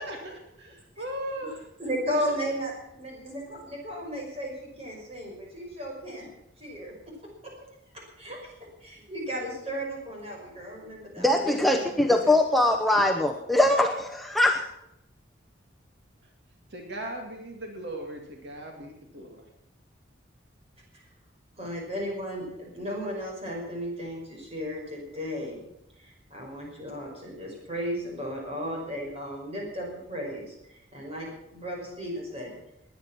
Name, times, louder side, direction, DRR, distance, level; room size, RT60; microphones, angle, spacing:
voice 1, 0.0-1.6 11.4-12.4 16.7-19.4, equal, 60° right, 2 dB, 2.4 m, -38 dB
voice 2, 1.8-6.3 6.6-7.2 7.4-7.5 7.9-8.5 8.8-11.3 21.6-25.7 26.0-32.6, equal, 30° right, -1 dB, 5.7 m, -35 dB
voice 3, 11.2-14.6, left 1 dB, ahead, 2 dB, 0.8 m, -22 dB
20.0 x 9.6 x 6.1 m, 0.83 s
head